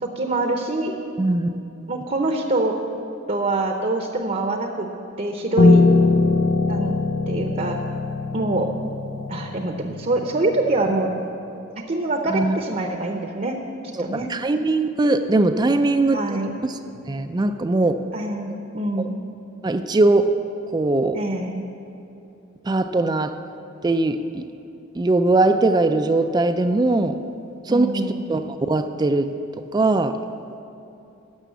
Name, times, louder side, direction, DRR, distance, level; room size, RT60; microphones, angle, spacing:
voice 1, 0.0-1.0 1.9-2.8 3.3-4.9 5.2-5.9 6.7-6.9 7.3-7.8 8.3-8.7 9.3-11.1 11.9-13.6 14.0-14.3 16.1-16.5 18.1-19.2 21.1-21.6 27.7-28.3, right 2 dB, 40° right, 4 dB, 0.7 m, -25 dB
voice 2, 1.2-1.5 1.8-1.9 12.3-12.6 14.0-16.4 16.6-16.8 17.1-18.0 19.0-19.1 19.6-20.3 20.7-21.2 22.6-23.4 23.8-24.4 25.0-27.2 27.6-29.3 29.7-30.2, right 2 dB, 20° right, 8 dB, 0.3 m, -20 dB
Piano, 5.6-10.8, left 3 dB, 70° left, 0.5 m, -21 dB
12.0 x 6.9 x 8.2 m, 2.8 s
head